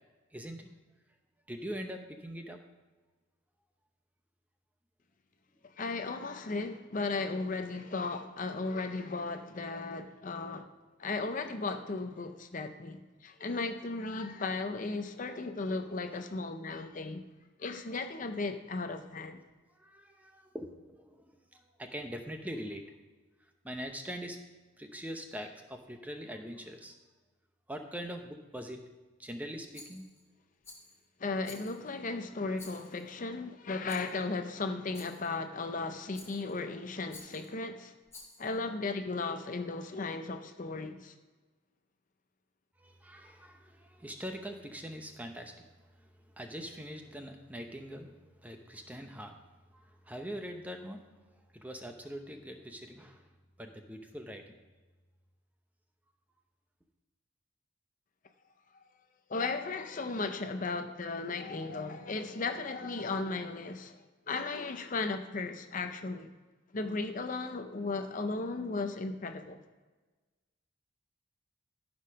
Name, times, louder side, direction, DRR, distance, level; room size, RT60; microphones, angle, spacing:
voice 1, 0.3-0.7 1.5-2.6 16.1-16.2 19.7-21.2 21.5-22.8 23.6-24.4 24.8-27.0 27.7-28.8 29.2-30.0 42.8-45.6 46.0-49.4 49.7-51.0 51.5-53.3 53.6-54.5, equal, 10° right, 0.7 m, -43 dB
voice 2, 5.8-10.7 11.0-17.2 17.6-19.4 31.2-37.9 38.4-41.1 59.3-64.0 64.3-66.3 66.7-69.6, left 3 dB, 40° left, 0.6 m, -36 dB
Rattle, 29.7-30.2 30.6-31.0 31.4-32.0 32.5-33.1 33.9-34.2 34.9-35.3 36.1-36.6 37.1-37.5 38.1-38.5, left 3 dB, 15° left, 2.4 m, -52 dB
13.5 x 5.2 x 5.7 m
head